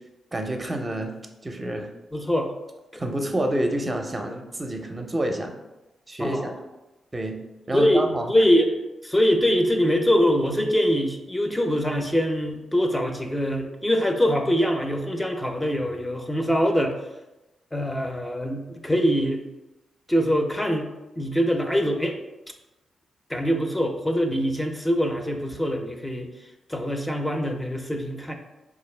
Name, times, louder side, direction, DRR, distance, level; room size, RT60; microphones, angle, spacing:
voice 1, 0.3-1.1 1.4-1.9 2.9-5.5 6.1-6.5 7.1-7.4 7.7-8.3, right 1 dB, 30° right, 4 dB, 0.6 m, -28 dB
voice 2, 2.1-2.5 2.9-3.0 6.2-6.6 7.7-16.9 17.7-19.4 20.1-20.9 21.2-22.2 23.3-26.3 26.7-28.3, equal, 15° left, 3 dB, 0.6 m, -23 dB
4.4 x 2.4 x 3.3 m, 1.0 s
supercardioid pair, 45°, 0 cm